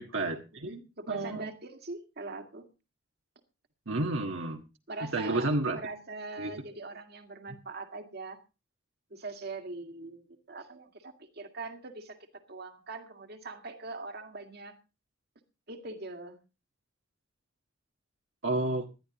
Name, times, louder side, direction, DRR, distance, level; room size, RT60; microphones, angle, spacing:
voice 1, 0.0-0.8 1.1-1.5 3.9-4.6 5.1-5.8 6.4-6.5 18.4-18.8, right 2 dB, 75° right, 2 dB, 1.5 m, -30 dB
voice 2, 0.7-2.6 4.9-8.4 9.1-12.2 12.5-14.8 15.7-16.4, right 3 dB, 55° right, 6 dB, 2.0 m, -42 dB
19.5 x 12.0 x 2.9 m, 0.30 s
head